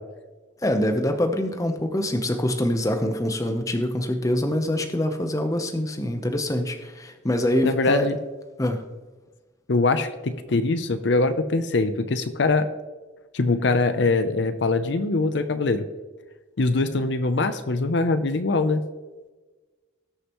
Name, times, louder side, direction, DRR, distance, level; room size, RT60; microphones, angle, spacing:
voice 1, 0.6-8.0 8.6-8.8, left 1 dB, 15° left, 6 dB, 0.8 m, -25 dB
voice 2, 7.6-8.2 9.7-12.7 13.3-15.9 16.6-18.8, left 3 dB, 60° left, 10 dB, 0.6 m, -23 dB
18.5 x 6.7 x 3.0 m, 1.3 s
head